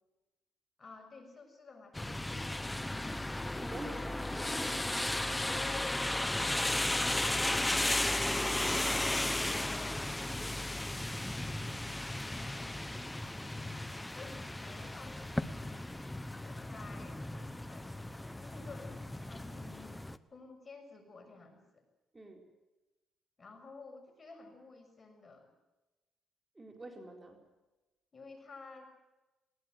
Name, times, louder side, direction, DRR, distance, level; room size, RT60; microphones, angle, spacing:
voice 1, 0.8-3.2 5.4-6.6 8.2-10.8 12.3-12.9 14.1-15.8 16.4-17.9 18.4-20.0 20.3-21.8 23.4-25.5 28.1-28.9, left 3 dB, 30° left, 5 dB, 6.8 m, -52 dB
sound 1, 1.9-20.2, left 1 dB, 10° left, 1.0 m, -35 dB
voice 2, 3.6-4.8 6.8-7.1 22.1-22.5 26.5-27.4, right 2 dB, 20° right, 3 dB, 4.2 m, -48 dB
20.5 x 19.0 x 9.5 m, 1.1 s
cardioid pair, 90°, 0 cm